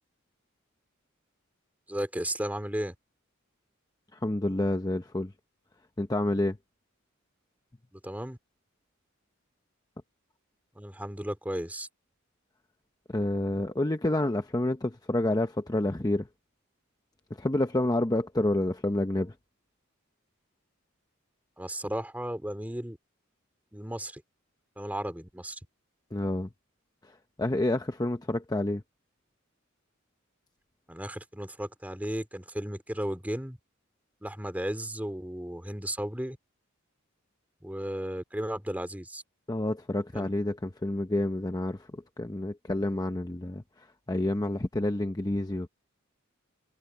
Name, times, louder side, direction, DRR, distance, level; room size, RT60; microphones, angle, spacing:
voice 1, 1.9-2.9 7.9-8.4 10.7-11.9 13.5-13.6 21.6-23.0 23.7-24.2 24.8-25.6 30.9-33.6 34.2-36.4 37.6-39.2 40.1-40.4, right 1 dB, 10° right, 2.6 m, -34 dB
voice 2, 4.1-5.3 6.0-6.6 13.1-16.3 17.4-19.3 26.1-26.5 27.0-28.8 39.5-45.7, left 1 dB, 20° left, 0.8 m, -29 dB
head